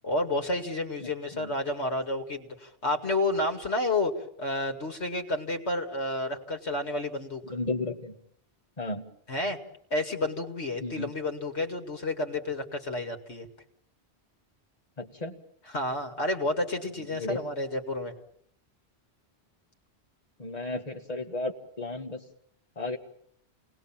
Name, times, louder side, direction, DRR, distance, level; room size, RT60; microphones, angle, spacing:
voice 1, 0.0-7.4 9.3-9.6 9.9-13.5 15.7-18.1, left 2 dB, 85° left, 4 dB, 2.6 m, -30 dB
voice 2, 1.0-1.5 7.5-8.2 8.8-9.0 10.8-11.1 15.0-15.4 17.1-17.4 20.4-22.2 22.8-23.0, left 2 dB, 35° left, 2 dB, 2.2 m, -34 dB
28.5 x 19.5 x 7.4 m, 0.68 s
omnidirectional pair, 1.1 m